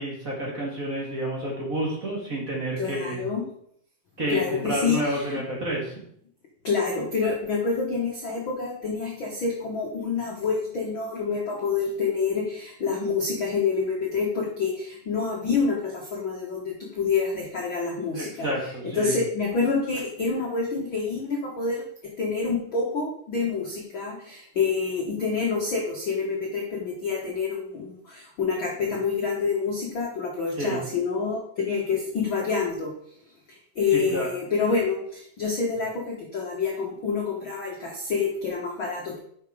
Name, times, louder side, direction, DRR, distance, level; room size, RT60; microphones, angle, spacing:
voice 1, 0.0-3.2 4.2-6.0 18.1-19.1 30.6-30.8 33.9-34.3, right 1 dB, 30° right, -3 dB, 1.9 m, -29 dB
voice 2, 2.8-3.5 4.3-5.4 6.6-32.9 33.5-39.2, left 5 dB, 85° left, -2 dB, 1.0 m, -27 dB
7.5 x 5.8 x 4.9 m, 0.67 s
omnidirectional pair, 4.3 m